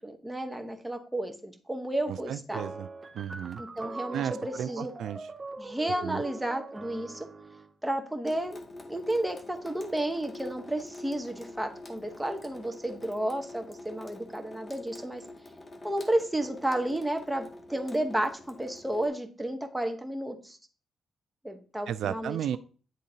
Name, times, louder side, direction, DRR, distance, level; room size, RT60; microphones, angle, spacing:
voice 1, 0.0-2.6 3.6-4.9 5.6-7.3 7.8-8.6 8.9-15.2 15.8-20.6 21.4-22.4, right 1 dB, 10° right, 5 dB, 1.0 m, -32 dB
voice 2, 2.1-2.9 3.1-3.6 4.1-5.3 6.0-6.2 21.9-22.6, right 9 dB, 75° right, 15 dB, 0.3 m, -34 dB
sound 1, 2.5-7.7, right 3 dB, 25° right, 0.6 m, -42 dB
Water tap faucet / Sink (filling or washing) / Drip, 8.3-19.1, left 2 dB, 25° left, 1.1 m, -46 dB
10.0 x 3.7 x 2.8 m, 0.39 s
cardioid pair, 95°, 0 cm